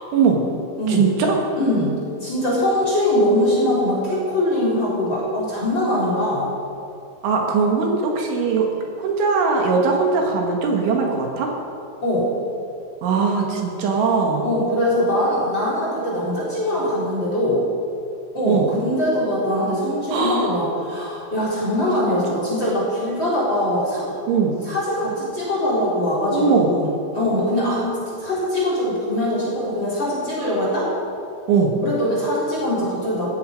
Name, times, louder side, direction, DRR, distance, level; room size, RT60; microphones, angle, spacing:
voice 1, 0.9-1.4 7.2-8.7 9.0-11.5 13.0-14.5 18.5-18.7 20.1-20.6 22.3-22.4 24.3-24.6 26.3-26.7 31.5-31.7, right 5 dB, 70° right, 1 dB, 3.8 m, -20 dB
voice 2, 1.6-1.9 2.2-6.5 12.0-12.3 14.4-17.6 18.3-24.2 24.7-30.9 31.8-33.3, left 1 dB, 25° left, -6 dB, 3.9 m, -22 dB
17.5 x 14.0 x 5.2 m, 2.7 s
omnidirectional pair, 5.9 m